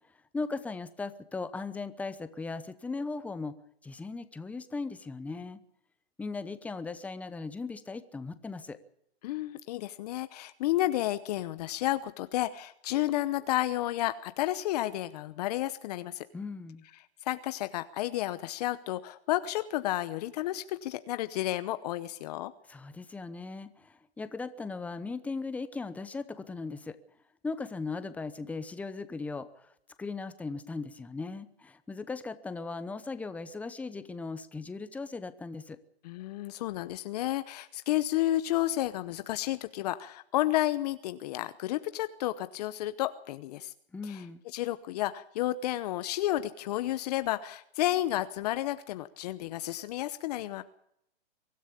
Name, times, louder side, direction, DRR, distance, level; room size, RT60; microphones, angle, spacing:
voice 1, 0.3-3.6 3.8-5.6 6.2-8.8 16.3-16.8 22.7-27.0 27.4-29.7 30.0-35.8 43.9-44.4, left 3 dB, 5° left, 12 dB, 0.8 m, -38 dB
voice 2, 9.2-16.2 17.2-22.5 36.0-43.7 44.0-44.2 44.5-50.6, left 15 dB, 40° left, 12 dB, 0.9 m, -31 dB
23.5 x 13.0 x 8.6 m, 0.74 s
hypercardioid pair, 145°, 32 cm